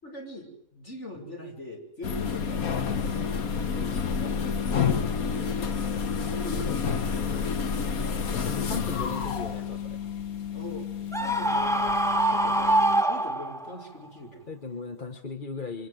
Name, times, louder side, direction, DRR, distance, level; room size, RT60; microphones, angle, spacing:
voice 1, 0.0-4.6 6.3-7.5 10.5-10.9 11.2-14.5, left 1 dB, 50° left, 2 dB, 6.4 m, -42 dB
sound 1, 2.0-13.0, left 6 dB, 75° left, 1.8 m, -29 dB
voice 2, 8.4-10.0 14.5-15.9, left 4 dB, 35° left, 7 dB, 1.6 m, -37 dB
Screaming, 11.1-13.8, right 1 dB, ahead, 1.0 m, -24 dB
29.0 x 24.5 x 7.9 m, 0.69 s
omnidirectional pair, 1.5 m